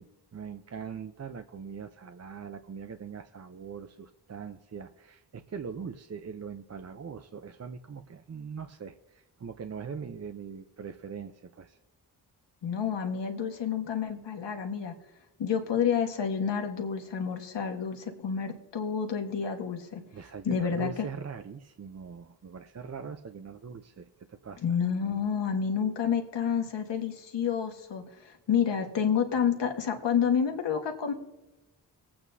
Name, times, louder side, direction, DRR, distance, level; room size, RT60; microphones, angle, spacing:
voice 1, 0.0-11.8 20.1-24.6, right 6 dB, 40° right, 8 dB, 0.6 m, -42 dB
voice 2, 12.6-14.9 15.4-20.0 20.4-20.9 24.6-31.1, left 7 dB, 85° left, 4 dB, 1.5 m, -29 dB
20.5 x 8.6 x 2.7 m, 1.0 s
cardioid pair, 75°, 42 cm